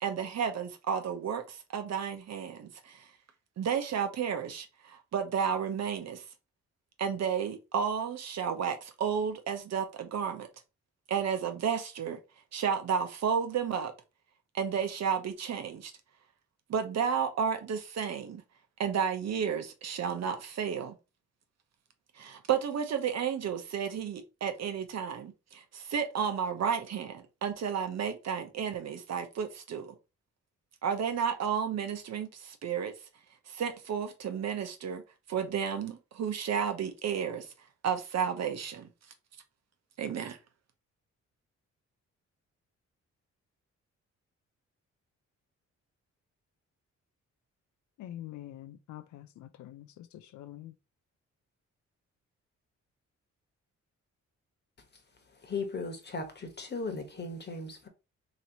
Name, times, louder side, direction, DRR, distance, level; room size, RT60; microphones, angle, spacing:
voice 1, 0.0-3.0 3.6-6.2 7.0-10.5 11.1-12.2 12.5-13.9 14.5-15.9 16.7-18.4 18.8-20.9 22.2-29.9 30.8-32.9 33.5-35.0 35.3-37.5 37.8-38.9 40.0-40.4, right 7 dB, 60° right, 0.9 m, -32 dB
voice 2, 48.0-50.7, left 13 dB, 80° left, 0.5 m, -46 dB
voice 3, 55.4-57.9, left 3 dB, 35° left, 1.3 m, -37 dB
3.0 x 2.9 x 3.9 m
cardioid pair, 75°, 29 cm